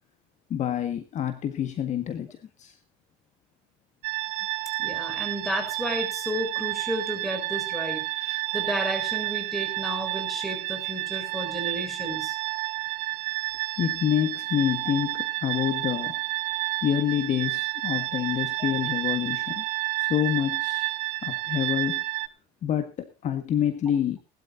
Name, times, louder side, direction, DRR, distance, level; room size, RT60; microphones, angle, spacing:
voice 1, 0.5-2.7 13.8-16.2 16.8-19.7 20.0-20.9 21.2-22.0 22.6-24.2, left 9 dB, 40° left, 9 dB, 1.7 m, -27 dB
sound 1, 4.0-22.3, right 20 dB, 85° right, 1.0 m, -30 dB
voice 2, 4.8-12.4, equal, ahead, 4 dB, 6.6 m, -32 dB
20.5 x 12.5 x 2.7 m, 0.28 s
cardioid pair, 135°, 18 cm